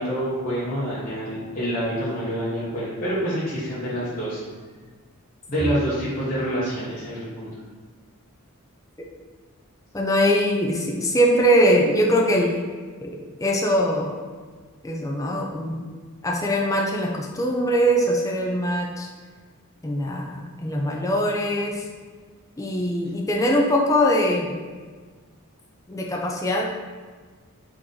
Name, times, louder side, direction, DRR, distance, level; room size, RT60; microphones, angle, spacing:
voice 1, 0.0-4.4 5.5-7.5, equal, 35° left, -12 dB, 0.9 m, -27 dB
voice 2, 9.9-12.5 13.0-13.1 13.4-14.2 14.8-15.8 16.2-19.1 19.8-21.8 22.6-24.5 25.9-26.6, equal, 15° left, -1 dB, 0.4 m, -22 dB
3.8 x 2.9 x 3.8 m, 1.5 s
head